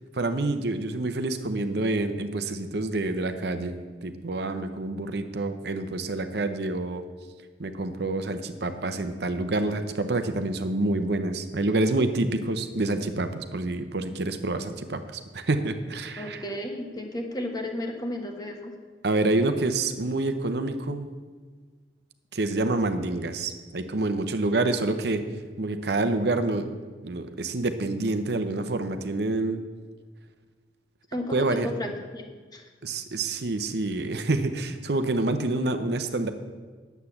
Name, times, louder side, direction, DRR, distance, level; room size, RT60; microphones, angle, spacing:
voice 1, 0.1-7.0 7.6-16.4 19.0-21.1 22.3-25.3 25.6-26.7 27.0-29.6 31.3-31.7 32.8-36.3, right 2 dB, 65° right, 8 dB, 0.8 m, -27 dB
voice 2, 16.2-18.8 31.1-32.7, left 1 dB, 25° left, 3 dB, 1.3 m, -33 dB
10.0 x 8.2 x 7.2 m, 1.5 s
head